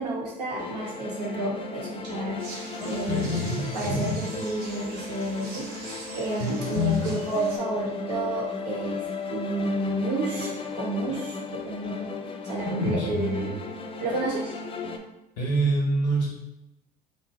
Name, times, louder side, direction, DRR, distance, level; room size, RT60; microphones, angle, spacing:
voice 1, 0.0-3.2 3.7-12.1 12.4-13.5 14.0-14.6, right 2 dB, 80° right, -4 dB, 1.0 m, -31 dB
sound 1, 0.5-15.0, left 4 dB, 25° left, 0.4 m, -35 dB
sound 2, 2.4-7.6, right 2 dB, 50° right, 1.1 m, -43 dB
voice 2, 2.8-4.2 6.4-7.1 12.6-13.5 15.4-16.3, equal, 75° left, -4 dB, 1.1 m, -27 dB
3.0 x 2.5 x 3.5 m, 0.88 s
hypercardioid pair, 70°, 20 cm